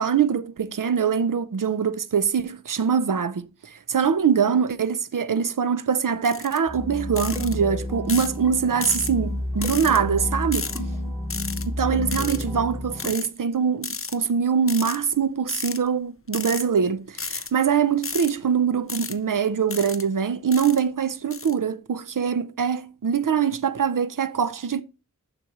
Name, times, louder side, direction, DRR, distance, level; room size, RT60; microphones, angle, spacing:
voice 1, 0.0-10.7 11.7-24.8, right 7 dB, 70° right, 0.7 m, -23 dB
sound 1, 6.2-6.6 7.2-7.5 8.1-8.4 8.8-9.1 9.6-10.0 10.5-10.8 11.3-11.6 12.1-12.4 13.0-13.3 13.8-14.2 14.7-15.0 15.5-15.8 16.3-16.6 17.1-17.5 18.0-18.3 18.9-19.1 19.7-20.0 20.5-20.8 21.3-21.5, left 5 dB, 40° left, 0.7 m, -32 dB
sound 2, 6.7-13.1, left 1 dB, 10° right, 2.7 m, -30 dB
7.1 x 6.3 x 3.0 m
wide cardioid pair, 50°, 33 cm